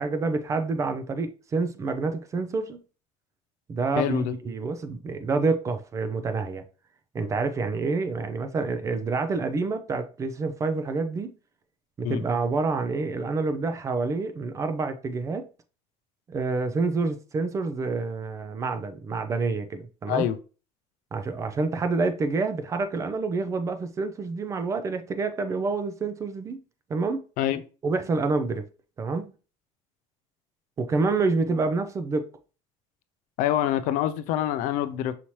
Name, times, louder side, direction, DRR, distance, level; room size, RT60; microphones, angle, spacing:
voice 1, 0.0-2.8 3.7-6.6 7.1-11.3 12.0-15.5 16.3-20.3 21.1-26.6 26.9-27.2 27.8-28.7 29.0-29.3 30.8-32.3, right 3 dB, 20° right, 0.4 m, -28 dB
voice 2, 4.0-4.3 12.0-12.2 20.1-20.4 27.4-27.6 33.4-35.1, left 11 dB, 65° left, 0.4 m, -26 dB
5.6 x 2.8 x 3.0 m
cardioid pair, 160°, 14 cm